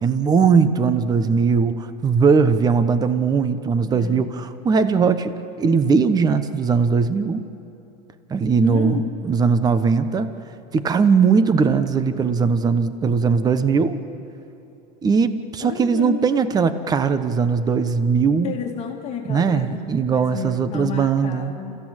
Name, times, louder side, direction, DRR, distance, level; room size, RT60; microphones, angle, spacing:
voice 1, 0.0-7.5 8.3-10.3 10.7-14.0 15.0-18.5 19.3-21.5, right 5 dB, 20° right, 11 dB, 1.0 m, -19 dB
voice 2, 3.9-4.3 8.6-9.1 15.6-16.3 18.4-21.8, left 7 dB, 30° left, 0 dB, 2.8 m, -31 dB
28.0 x 15.5 x 9.0 m, 2.9 s
supercardioid pair, 135°, 20 cm